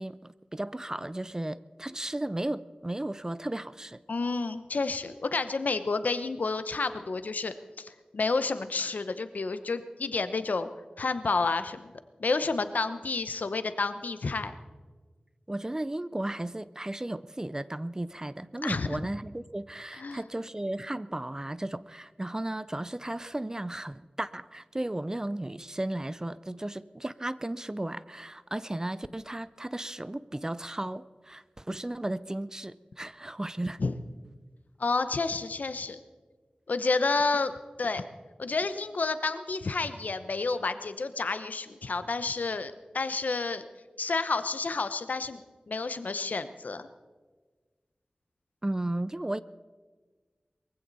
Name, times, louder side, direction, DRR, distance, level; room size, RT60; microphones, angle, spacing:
voice 1, 0.0-4.0 15.5-33.8 48.6-49.4, right 1 dB, 20° right, 16 dB, 0.5 m, -35 dB
voice 2, 4.1-10.7 11.0-11.9 12.2-14.5 18.6-19.0 20.0-20.2 33.8-33.9 34.8-36.0 36.7-37.5 37.8-38.0 38.4-43.6 44.0-45.4 45.7-46.9, left 3 dB, 80° left, 11 dB, 0.9 m, -30 dB
22.0 x 15.5 x 4.1 m, 1.4 s
wide cardioid pair, 70°, 3 cm